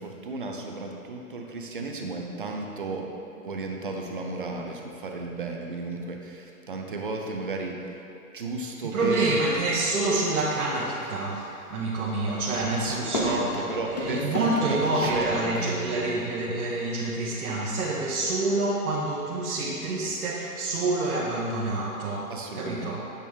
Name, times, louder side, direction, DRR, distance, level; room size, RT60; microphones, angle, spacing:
voice 1, 0.0-3.1 3.4-8.0 8.3-9.6 12.7-16.1 22.3-23.0, right 3 dB, 35° right, 1 dB, 0.5 m, -34 dB
voice 2, 8.8-23.0, right 2 dB, 70° right, -6 dB, 1.2 m, -27 dB
sound 1, 10.3-11.1 12.1-15.7, left 1 dB, 30° left, 0.6 m, -34 dB
8.5 x 5.1 x 3.6 m, 2.9 s
hypercardioid pair, 170°, 45 cm